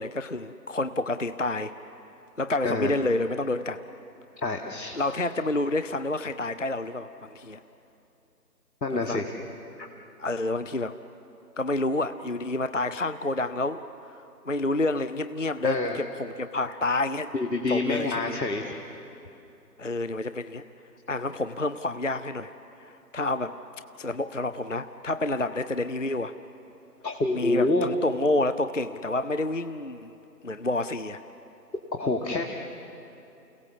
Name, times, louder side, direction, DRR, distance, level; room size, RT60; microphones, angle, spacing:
voice 1, 0.0-1.7 2.4-3.8 4.9-7.6 8.9-9.2 10.2-11.0 11.6-13.8 14.1-17.3 17.7-18.4 19.8-20.6 21.1-22.5 22.8-23.6 24.0-26.3 27.3-30.1 30.4-31.2, left 2 dB, 50° left, 12 dB, 0.5 m, -29 dB
voice 2, 4.4-5.0 8.8-9.3 15.6-16.0 17.3-18.6 27.0-27.9 32.0-32.4, left 2 dB, 80° left, 2 dB, 2.0 m, -27 dB
29.5 x 18.0 x 7.1 m, 2.9 s
figure-of-eight pair, 175°, 50 cm